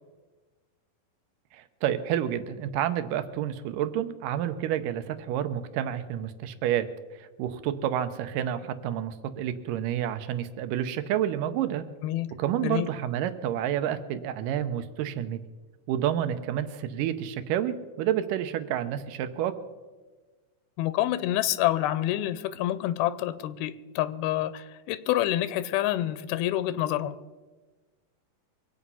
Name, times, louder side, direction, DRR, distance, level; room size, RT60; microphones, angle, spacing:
voice 1, 1.5-6.9 7.2-11.8 12.4-15.4 15.9-19.5, right 10 dB, 75° right, 10 dB, 2.2 m, -29 dB
voice 2, 12.0-12.3 12.6-12.9 20.8-27.2, left 13 dB, 90° left, 15 dB, 2.5 m, -27 dB
24.0 x 8.7 x 5.5 m, 1.3 s
omnidirectional pair, 4.3 m